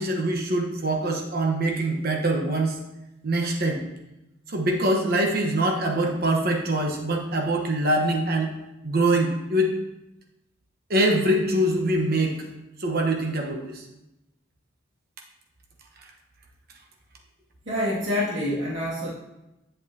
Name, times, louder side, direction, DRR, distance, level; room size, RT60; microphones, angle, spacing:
voice 1, 0.0-2.8 3.2-3.8 4.5-8.5 8.8-9.7 10.9-12.4 12.8-13.8, right 1 dB, 55° right, 2 dB, 1.0 m, -24 dB
voice 2, 17.7-19.1, left 1 dB, 70° right, -6 dB, 2.1 m, -26 dB
8.8 x 7.9 x 2.7 m, 0.93 s
head